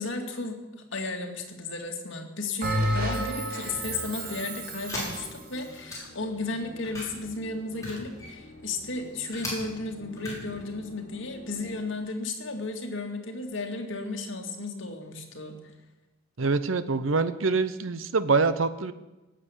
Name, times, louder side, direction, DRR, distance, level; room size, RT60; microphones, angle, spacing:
voice 1, 0.0-15.6, left 3 dB, 65° left, 3 dB, 2.2 m, -34 dB
Bell, 2.6-5.4, right 1 dB, 45° right, 2.9 m, -30 dB
Musical instrument, 3.7-12.2, left 1 dB, 45° left, 3.5 m, -49 dB
sound 1, 4.8-6.3 6.8-9.5 10.0-10.7, left 1 dB, 15° left, 5.9 m, -38 dB
voice 2, 16.4-18.9, right 4 dB, 75° right, 13 dB, 0.8 m, -25 dB
18.0 x 7.7 x 8.4 m, 1.1 s
head